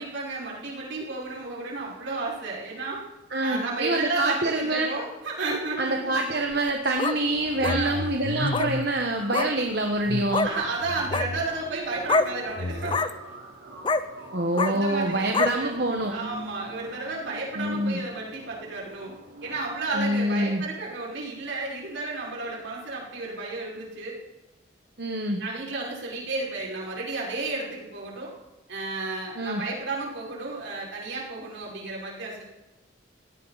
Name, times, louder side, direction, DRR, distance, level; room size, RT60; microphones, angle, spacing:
voice 1, 0.0-3.0 3.4-6.2 7.6-8.0 10.3-13.0 14.7-15.8 16.1-19.1 19.4-24.2 25.4-28.3 28.7-32.4, right 3 dB, 75° right, -4 dB, 5.5 m, -32 dB
voice 2, 3.3-4.9 5.8-10.5 14.3-16.1 17.5-18.0 19.9-20.6 25.0-25.4 29.4-29.6, right 1 dB, 55° right, 3 dB, 1.3 m, -26 dB
sound 1, 6.5-7.2 7.6-7.8 8.5-8.7 9.3-9.5 10.3-10.5 11.0-11.3 12.1-12.3 12.8-13.1 13.8-14.0 14.5-14.7 15.3-15.5, left 3 dB, 25° left, 0.6 m, -25 dB
sound 2, 7.1-21.1, right 1 dB, 90° right, 3.8 m, -44 dB
sound 3, 7.3-9.0 10.0-11.6 12.5-13.0, left 2 dB, 60° left, 0.8 m, -33 dB
17.5 x 16.5 x 4.1 m, 1.0 s
head